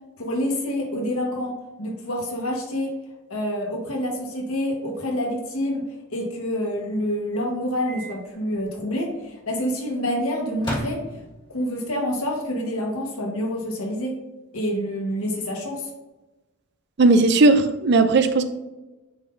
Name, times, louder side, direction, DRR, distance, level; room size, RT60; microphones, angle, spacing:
voice 1, 0.2-2.9 3.3-5.8 6.1-11.0 11.5-14.2 14.5-15.9, equal, 80° left, 0 dB, 1.4 m, -27 dB
Microwave oven, 7.9-8.2 8.5-8.6 10.6-11.6, equal, 20° left, 1.6 m, -33 dB
voice 2, 17.0-18.4, right 3 dB, 50° right, 9 dB, 0.5 m, -16 dB
9.3 x 3.9 x 2.7 m, 1.1 s
head